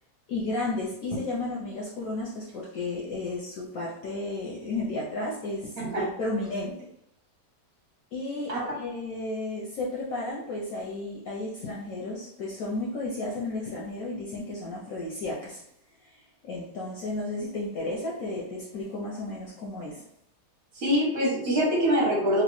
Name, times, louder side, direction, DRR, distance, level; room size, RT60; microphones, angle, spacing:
voice 1, 0.3-6.8 8.1-15.6 16.0-16.2 16.4-20.0, left 2 dB, 65° left, -4 dB, 0.9 m, -33 dB
voice 2, 20.7-22.4, equal, 45° right, -5 dB, 1.0 m, -24 dB
3.1 x 2.5 x 3.0 m, 0.76 s
omnidirectional pair, 1.9 m